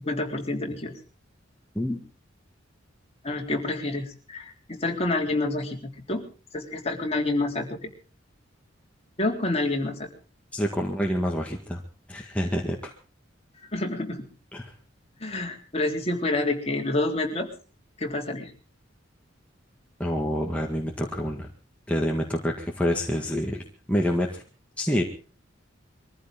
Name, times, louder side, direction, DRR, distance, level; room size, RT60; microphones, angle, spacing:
voice 1, 0.0-0.9 3.2-6.2 6.5-7.9 9.2-10.1 13.7-14.2 15.2-17.5 18.0-18.5, left 2 dB, 30° left, 2 dB, 3.6 m, -28 dB
voice 2, 10.5-11.8 12.1-12.9 14.5-14.7 20.0-21.5 21.9-23.6 23.9-24.4 24.8-25.0, equal, 5° left, -1 dB, 1.9 m, -27 dB
23.5 x 15.0 x 3.7 m, 0.36 s
head